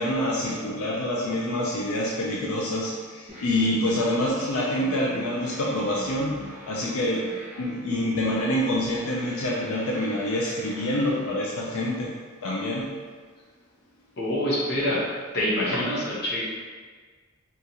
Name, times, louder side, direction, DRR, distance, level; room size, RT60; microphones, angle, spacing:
voice 1, 0.0-13.0, left 1 dB, 85° left, -3 dB, 0.4 m, -27 dB
sound 1, 3.3-11.3, left 1 dB, 5° right, 0.8 m, -41 dB
voice 2, 14.2-15.1 15.3-16.4, left 1 dB, 50° left, -7 dB, 1.0 m, -25 dB
3.9 x 2.4 x 2.8 m, 1.5 s
head